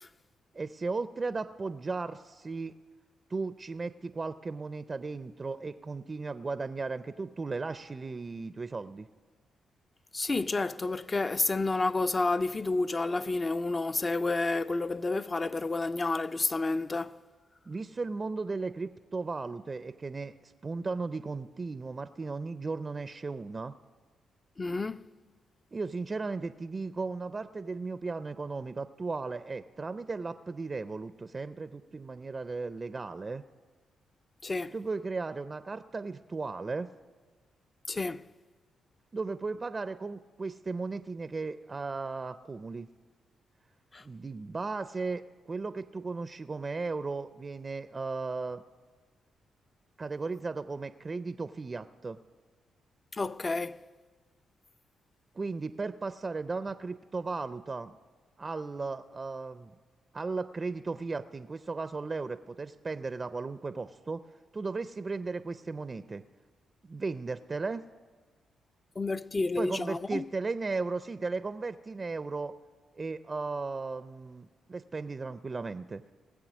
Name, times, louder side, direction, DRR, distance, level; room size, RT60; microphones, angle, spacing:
voice 1, 0.5-2.7 3.3-9.1 17.7-23.7 25.7-33.4 34.7-36.9 39.1-42.9 44.0-48.6 50.0-52.2 55.4-58.0 58.4-59.7 60.1-64.2 64.5-66.2 66.8-67.8 69.6-72.5 73.0-76.0, right 3 dB, 35° right, 0.4 m, -36 dB
voice 2, 10.1-17.2 24.6-25.1 34.4-34.7 37.9-38.2 43.9-44.0 53.1-53.8 69.0-70.3, left 3 dB, 35° left, 0.4 m, -30 dB
18.5 x 7.6 x 6.2 m
supercardioid pair, 60°, 0 cm